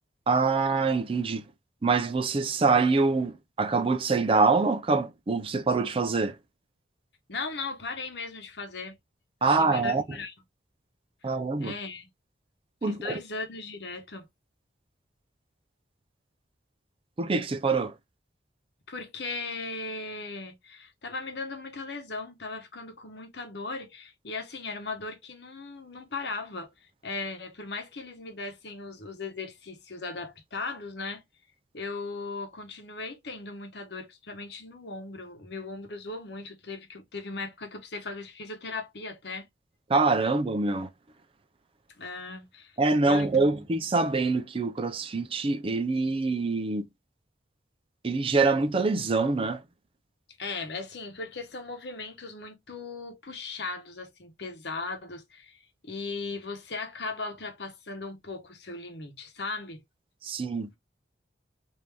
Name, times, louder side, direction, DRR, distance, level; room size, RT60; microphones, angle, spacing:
voice 1, 0.3-1.4 1.8-6.4 9.4-10.0 11.2-11.7 12.8-13.2 17.2-18.0 39.9-40.9 42.8-46.9 48.0-49.6 60.2-60.8, right 3 dB, 30° right, 0.4 m, -25 dB
voice 2, 7.3-9.0 9.4-10.3 11.6-12.1 12.8-14.3 18.9-31.2 31.7-39.5 42.0-42.8 43.1-43.6 50.4-59.8, left 3 dB, 65° left, 1.0 m, -38 dB
3.3 x 2.7 x 3.3 m
head